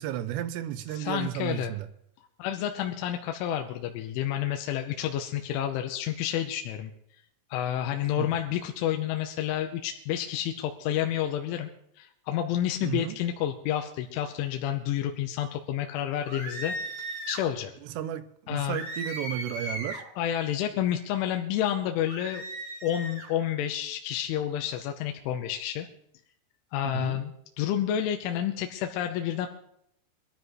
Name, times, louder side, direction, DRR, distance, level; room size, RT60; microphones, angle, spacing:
voice 1, 0.0-1.9 8.2-8.3 12.8-13.2 17.8-20.0 26.9-27.2, right 12 dB, 80° right, 10 dB, 2.4 m, -33 dB
voice 2, 0.9-1.7 2.4-6.9 7.5-11.7 12.0-17.7 18.5-18.8 20.2-22.4 22.8-25.9 26.7-29.5, left 11 dB, 80° left, 4 dB, 3.2 m, -30 dB
sound 1, 16.3-17.5 18.7-20.1 22.1-23.3, right 1 dB, 50° right, 7.7 m, -37 dB
22.5 x 13.0 x 3.2 m, 0.72 s
omnidirectional pair, 5.8 m